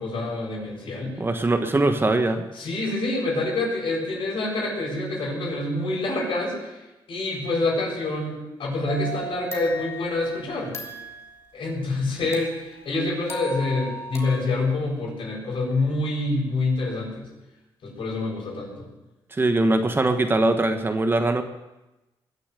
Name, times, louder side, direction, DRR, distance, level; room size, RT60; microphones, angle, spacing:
voice 1, 0.0-1.2 2.6-6.8 7.1-10.8 11.5-17.3 17.8-18.9, left 2 dB, 70° left, -3 dB, 7.8 m, -27 dB
voice 2, 1.2-2.5 19.3-21.4, right 2 dB, 25° right, 7 dB, 1.3 m, -21 dB
sound 1, 8.8-11.3 12.3-14.4, equal, 30° left, 2.9 m, -37 dB
21.5 x 7.2 x 8.2 m, 1.0 s
cardioid pair, 105°, 9 cm